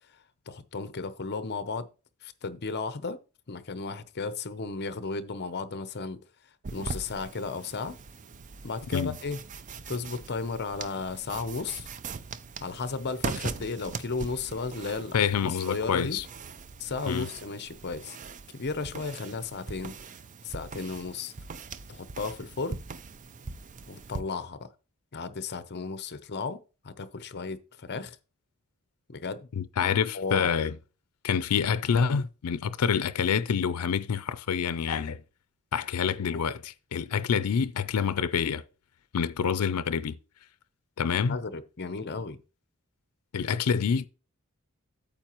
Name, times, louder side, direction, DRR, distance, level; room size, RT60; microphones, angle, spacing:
voice 1, 0.5-1.9 2.2-3.2 3.5-6.2 6.7-8.0 8.6-9.4 9.9-11.9 12.6-15.2 15.7-16.2 16.8-18.2 18.5-20.0 20.4-21.3 21.9-22.8 23.9-24.7 25.1-28.2 29.1-29.5 30.1-30.5 36.1-36.4 41.2-42.4, left 4 dB, 50° left, 0.7 m, -34 dB
sound 1, 6.6-24.2, right 4 dB, 35° right, 0.4 m, -41 dB
voice 2, 15.1-16.2 17.1-17.3 29.5-30.7 31.2-35.2 35.7-38.6 39.1-40.2 41.0-41.4 43.3-44.1, left 7 dB, 85° left, 0.5 m, -27 dB
8.9 x 7.3 x 3.0 m
head